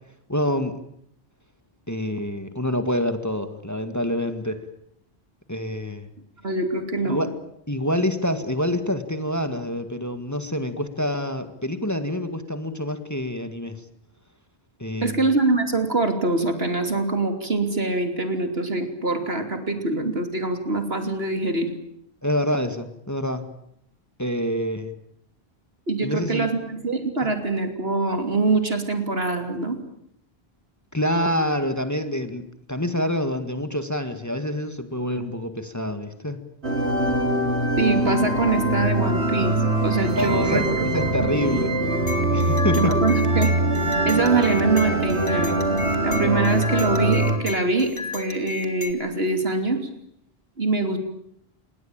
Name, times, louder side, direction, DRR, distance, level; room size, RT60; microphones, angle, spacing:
voice 1, 0.3-0.7 1.9-4.6 5.5-6.1 7.1-7.3 7.7-13.8 14.8-15.3 22.2-23.4 24.2-25.0 26.0-26.5 30.9-36.4 40.1-40.6 40.9-41.7 42.3-42.9, left 1 dB, 15° left, 9 dB, 2.0 m, -26 dB
voice 2, 6.4-7.2 15.0-21.7 25.9-29.8 37.8-39.5 39.8-40.8 42.8-43.5 44.1-45.6 46.0-49.9 50.6-51.0, right 3 dB, 65° right, 7 dB, 3.3 m, -24 dB
sound 1, 36.6-47.4, right 1 dB, 90° right, 3.3 m, -23 dB
sound 2, 42.1-48.9, left 4 dB, 55° left, 2.7 m, -35 dB
27.5 x 20.5 x 8.9 m, 0.73 s
omnidirectional pair, 1.1 m